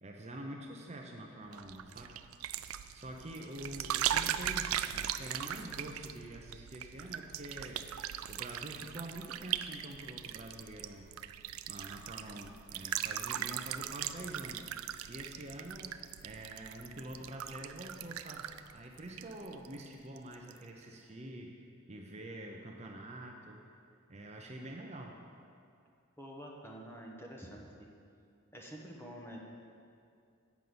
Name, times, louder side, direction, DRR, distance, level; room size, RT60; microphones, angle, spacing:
voice 1, 0.0-2.1 2.9-7.8 8.3-11.1 11.7-21.5 21.9-23.6 24.1-25.2, right 1 dB, 30° right, 1 dB, 0.6 m, -46 dB
sound 1, 1.5-19.9 20.2-20.6, right 11 dB, 80° right, 0.3 m, -39 dB
voice 2, 26.2-27.9 28.5-29.4, equal, 10° left, -1 dB, 1.0 m, -48 dB
8.2 x 5.4 x 7.7 m, 2.4 s
head